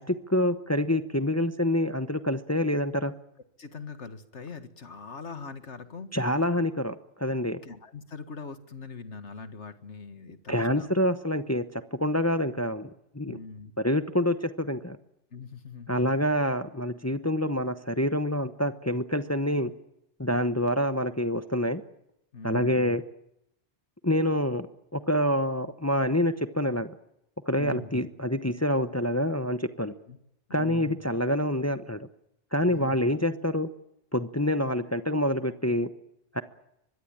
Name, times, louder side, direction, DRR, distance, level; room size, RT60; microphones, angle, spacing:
voice 1, 0.0-3.1 6.1-7.6 10.5-12.9 13.1-13.4 13.8-15.0 15.9-19.7 20.2-21.8 22.4-23.0 24.0-24.7 24.9-26.9 27.5-29.9 30.5-32.0 32.5-33.7 34.1-35.9 36.3-36.4, left 1 dB, 15° left, 11 dB, 1.0 m, -27 dB
voice 2, 3.6-6.1 7.6-10.9 13.2-13.7 15.3-16.0 22.3-22.9 27.6-27.9 30.1-30.2 30.5-31.0 32.6-33.0, left 5 dB, 85° left, 11 dB, 2.1 m, -42 dB
24.5 x 21.5 x 8.9 m, 0.80 s
omnidirectional pair, 1.2 m